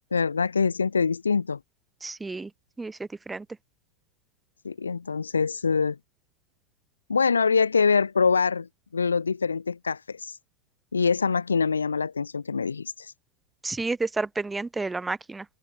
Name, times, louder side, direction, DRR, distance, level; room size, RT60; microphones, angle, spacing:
voice 1, 0.1-1.6 4.6-6.0 7.1-8.7 8.9-10.4 10.9-13.1, left 5 dB, 75° left, 6.9 m, -24 dB
voice 2, 2.0-2.5 2.8-3.5 13.6-15.4, right 3 dB, 10° right, 2.3 m, -31 dB
figure-of-eight pair, 90°, 0 cm